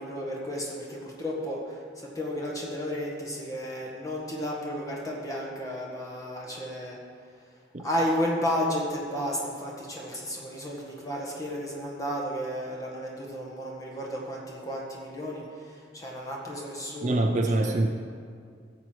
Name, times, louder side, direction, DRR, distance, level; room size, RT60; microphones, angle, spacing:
voice 1, 0.0-7.0 7.8-17.2 17.6-17.8, equal, 20° left, -2 dB, 1.7 m, -33 dB
voice 2, 17.0-17.9, right 2 dB, 40° right, 4 dB, 0.5 m, -24 dB
13.5 x 7.7 x 4.6 m, 2.1 s
head